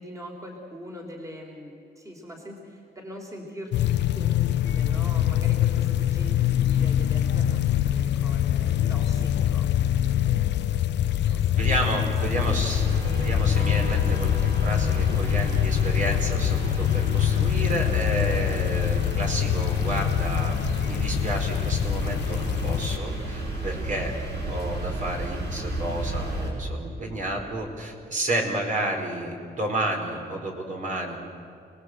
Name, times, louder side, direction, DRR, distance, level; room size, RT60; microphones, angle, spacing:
voice 1, 0.0-10.1 10.5-10.6 11.1-11.7 11.9-12.2 12.9-13.0 15.5-15.6 23.8-24.2 27.4-27.5, equal, 20° right, 0 dB, 3.8 m, -42 dB
sound 1, 3.7-23.0, left 11 dB, 85° left, 0.7 m, -24 dB
voice 2, 11.6-12.8 13.2-14.3 14.6-24.1 24.4-31.2, right 1 dB, 45° right, 1 dB, 4.8 m, -31 dB
sound 2, 12.3-26.5, right 2 dB, 75° right, 6.7 m, -32 dB
29.5 x 20.0 x 8.0 m, 2.6 s
cardioid pair, 130°, 18 cm